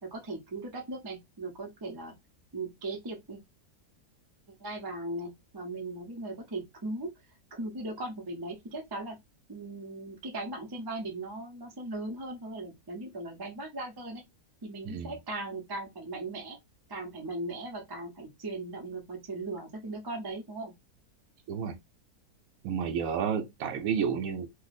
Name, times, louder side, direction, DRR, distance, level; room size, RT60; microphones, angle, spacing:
voice 1, 0.0-2.1 2.5-3.4 4.6-7.1 7.5-9.2 9.5-14.2 14.6-16.6 16.9-20.7, right 2 dB, 30° right, 0.4 m, -38 dB
voice 2, 22.6-24.5, right 7 dB, 70° right, 0.9 m, -31 dB
2.7 x 2.1 x 4.0 m
omnidirectional pair, 1.7 m